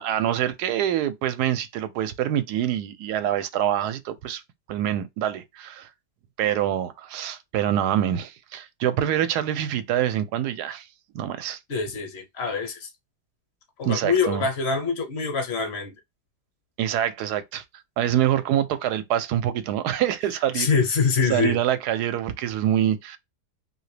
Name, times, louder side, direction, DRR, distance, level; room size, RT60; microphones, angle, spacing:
voice 1, 0.0-4.4 4.7-5.9 6.4-10.9 11.1-11.6 13.8-14.5 16.8-17.6 18.0-20.7 21.3-23.2, right 11 dB, 80° right, 1.1 m, -25 dB
voice 2, 11.7-12.9 13.8-15.9 20.5-21.6, left 5 dB, 50° left, 1.0 m, -24 dB
2.8 x 2.7 x 3.2 m
omnidirectional pair, 1.7 m